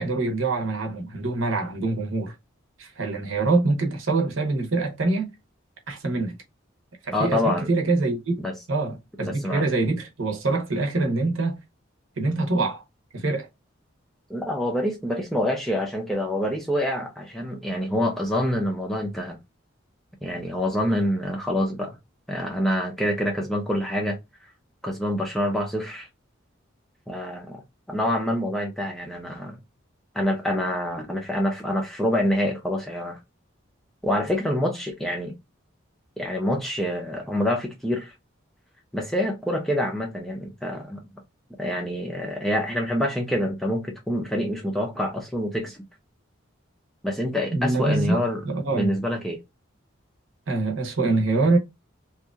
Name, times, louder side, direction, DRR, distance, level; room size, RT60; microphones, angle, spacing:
voice 1, 0.0-2.3 2.8-5.3 5.9-6.4 7.0-11.6 12.2-12.8 13.1-13.5 47.5-48.2 48.4-48.9 50.5-51.6, right 3 dB, 80° right, 0.9 m, -25 dB
voice 2, 7.1-7.7 8.4-8.5 9.2-9.7 14.3-19.4 20.2-22.0 22.3-24.2 24.8-26.1 27.1-27.6 27.9-29.6 30.1-33.2 34.0-35.3 36.2-38.1 38.9-41.0 41.6-45.8 47.0-48.4 48.7-49.4, left 1 dB, ahead, 0.5 m, -26 dB
2.8 x 2.5 x 2.3 m
head